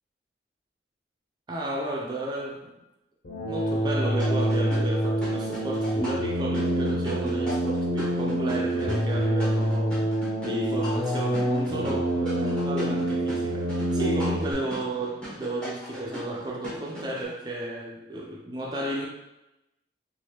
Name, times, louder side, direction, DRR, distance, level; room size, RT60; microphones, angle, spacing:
voice 1, 1.5-2.7 3.4-10.0 10.4-19.1, right 1 dB, 25° right, 0.3 m, -33 dB
sound 1, 3.2-14.5, right 1 dB, 60° left, 0.6 m, -26 dB
sound 2, 4.2-17.3, equal, 5° left, 0.7 m, -39 dB
3.2 x 2.5 x 2.8 m
head